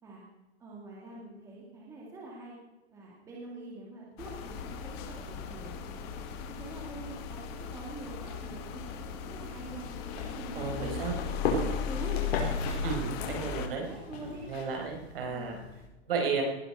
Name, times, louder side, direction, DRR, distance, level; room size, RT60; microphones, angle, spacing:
voice 1, 0.6-2.6 2.9-6.0 6.6-9.9 10.2-11.0 11.6-12.3 12.8-14.4 15.3-15.6, right 2 dB, 10° right, -3 dB, 2.2 m, -45 dB
sound 1, 4.2-13.7, left 7 dB, 20° left, 1.1 m, -36 dB
sound 2, 9.9-15.9, left 3 dB, 65° left, 4.7 m, -37 dB
voice 2, 10.5-11.2 12.8-13.9 14.5-15.5 16.1-16.4, right 5 dB, 55° right, 1 dB, 4.9 m, -33 dB
19.5 x 10.5 x 4.8 m, 1.0 s
hypercardioid pair, 175°, 33 cm